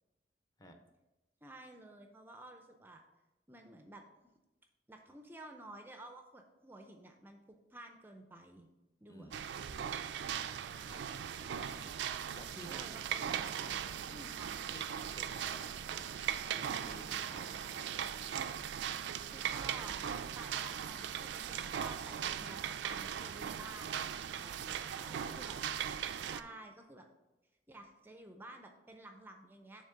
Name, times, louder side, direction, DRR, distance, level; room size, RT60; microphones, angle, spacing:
voice 1, 1.4-3.0 3.5-4.0 4.9-7.4 7.7-8.7 9.0-9.6 11.4-12.0 12.6-14.6 19.3-25.6 26.2-27.1 27.7-29.8, right 1 dB, 10° right, 4 dB, 0.4 m, -52 dB
voice 2, 9.1-9.9 10.8-11.0 12.3-12.9 14.7-18.0 24.9-25.5, equal, 20° left, 4 dB, 0.7 m, -54 dB
sound 1, 9.3-26.4, right 8 dB, 80° right, 0.3 m, -39 dB
7.2 x 3.2 x 5.6 m, 1.0 s
head